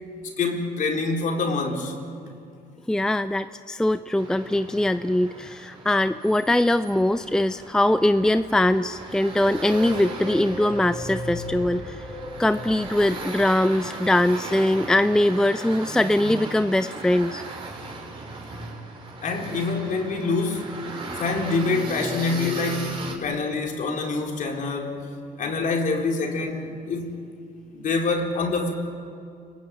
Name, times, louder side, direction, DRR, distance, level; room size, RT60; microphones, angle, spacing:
voice 1, 0.2-1.9 19.2-20.8 21.2-25.1 25.4-27.2 27.7-28.7, left 3 dB, 50° left, 1 dB, 4.5 m, -26 dB
voice 2, 2.9-12.0 12.4-17.4, left 1 dB, 5° left, 11 dB, 0.6 m, -22 dB
sound 1, 4.2-23.2, right 2 dB, 30° right, 5.0 m, -37 dB
sound 2, 9.3-13.9, left 2 dB, 20° left, 4.2 m, -36 dB
30.0 x 21.0 x 9.2 m, 2.4 s
cardioid pair, 110°, 17 cm